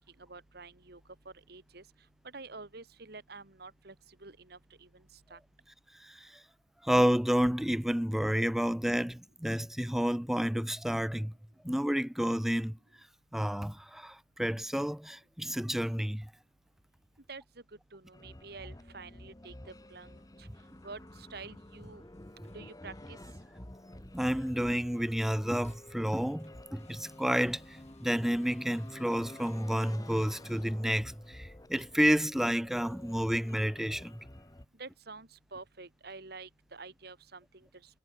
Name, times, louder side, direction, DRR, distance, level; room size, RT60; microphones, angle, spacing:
voice 1, 0.2-1.0 1.5-1.8 2.2-5.0 5.3-5.4 17.3-17.4 17.9-20.5 20.8-22.0 22.5-23.2 34.8-37.7, right 3 dB, 60° right, 2.0 m, -48 dB
voice 2, 6.0-6.4 6.8-11.3 11.6-12.8 13.3-16.3 24.1-34.2, equal, ahead, 0.4 m, -30 dB
sound 1, 18.1-34.7, left 1 dB, 20° left, 1.3 m, -50 dB
sound 2, 19.7-32.2, left 4 dB, 40° left, 7.9 m, -67 dB
head